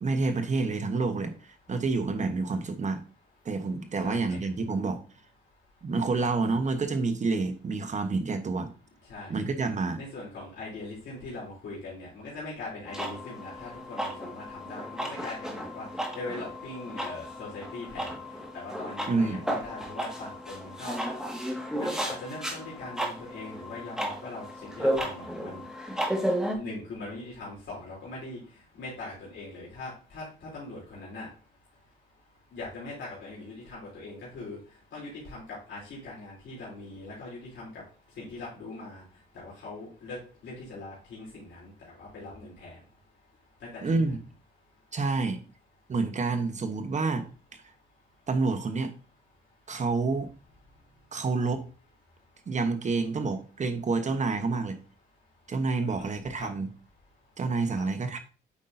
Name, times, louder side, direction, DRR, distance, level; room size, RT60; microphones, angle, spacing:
voice 1, 0.0-3.0 3.4-5.0 5.8-8.7 9.3-10.0 19.1-19.4 43.8-44.2 44.9-45.4 45.9-47.3 48.3-48.9 49.7-50.3 51.1-51.6 52.5-54.8 55.5-56.7 57.4-58.2, right 3 dB, 35° right, 8 dB, 1.0 m, -28 dB
voice 2, 4.0-4.4 6.2-6.3 9.0-9.4 10.0-21.4 21.7-25.7 26.5-31.4 32.5-43.0 43.6-43.9 50.7-51.1 55.8-56.1 56.4-56.5 57.7-57.8, left 2 dB, 70° left, -6 dB, 3.2 m, -41 dB
sound 1, 12.9-26.6, equal, 5° right, 1.7 m, -34 dB
8.3 x 5.3 x 2.6 m, 0.36 s
cardioid pair, 90°, 20 cm